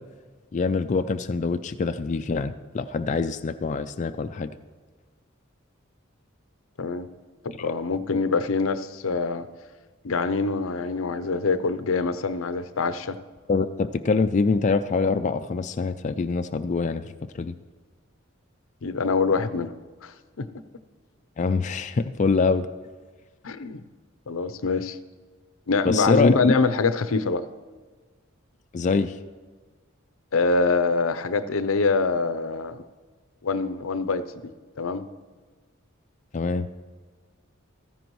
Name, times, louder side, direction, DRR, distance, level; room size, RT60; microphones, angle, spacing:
voice 1, 0.5-4.5 7.6-7.7 13.5-17.6 21.4-22.7 25.8-26.6 28.7-29.2 36.3-36.8, left 4 dB, 35° left, 0.4 m, -25 dB
voice 2, 7.4-9.5 10.0-13.2 18.8-19.7 20.0-20.5 23.4-23.8 24.3-25.0 25.7-27.4 30.3-32.8 33.4-34.2 34.8-35.1, left 4 dB, 80° left, 0.6 m, -24 dB
15.5 x 14.0 x 3.1 m
head